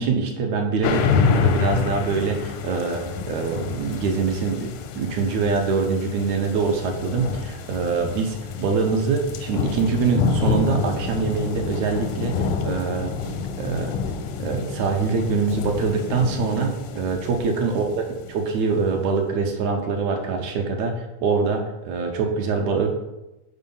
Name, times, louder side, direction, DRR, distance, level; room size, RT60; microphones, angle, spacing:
voice 1, 0.0-13.3 13.6-14.0 14.4-23.0, right 4 dB, 75° right, 3 dB, 1.9 m, -24 dB
sound 1, 0.8-18.6, left 5 dB, 85° left, 2.1 m, -27 dB
5.3 x 4.6 x 5.4 m, 0.96 s
omnidirectional pair, 3.6 m